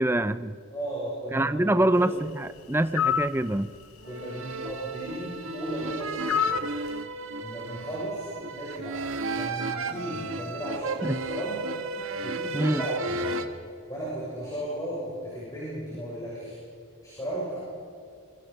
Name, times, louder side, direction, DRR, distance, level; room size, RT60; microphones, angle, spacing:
voice 1, 0.0-0.5 1.3-3.7 11.0-11.2 12.5-12.8, right 1 dB, 10° right, 13 dB, 0.4 m, -25 dB
voice 2, 0.7-2.1 4.0-6.6 7.4-9.0 9.3-11.7 12.2-13.3 13.9-16.6 17.0-17.6, right 1 dB, 15° left, -7 dB, 6.9 m, -35 dB
sound 1, 2.9-3.4 6.3-6.7, left 8 dB, 85° left, 0.9 m, -25 dB
sound 2, 4.0-13.5, right 3 dB, 70° right, 1.5 m, -34 dB
27.5 x 24.0 x 5.3 m, 2.3 s
head